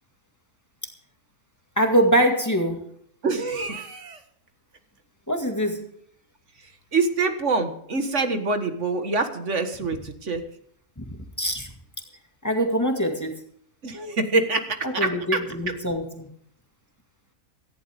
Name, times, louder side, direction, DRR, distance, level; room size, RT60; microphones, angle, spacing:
voice 1, 1.8-2.8 5.3-5.8 11.0-11.7 12.4-13.3 14.8-16.3, equal, 10° left, 3 dB, 2.0 m, -23 dB
voice 2, 3.2-4.2 6.9-10.4 13.8-15.4, right 3 dB, 55° right, 7 dB, 1.9 m, -25 dB
17.0 x 15.0 x 3.6 m, 0.68 s
omnidirectional pair, 1.5 m